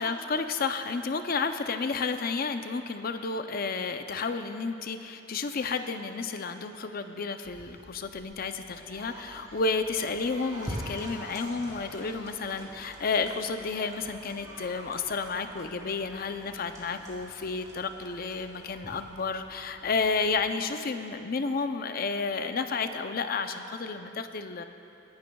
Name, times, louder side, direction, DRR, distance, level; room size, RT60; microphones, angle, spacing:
voice 1, 0.0-24.6, left 4 dB, 50° left, 8 dB, 0.5 m, -31 dB
sound 1, 7.5-20.4, right 1 dB, 15° right, 2.6 m, -45 dB
22.5 x 11.0 x 2.3 m, 2.9 s
head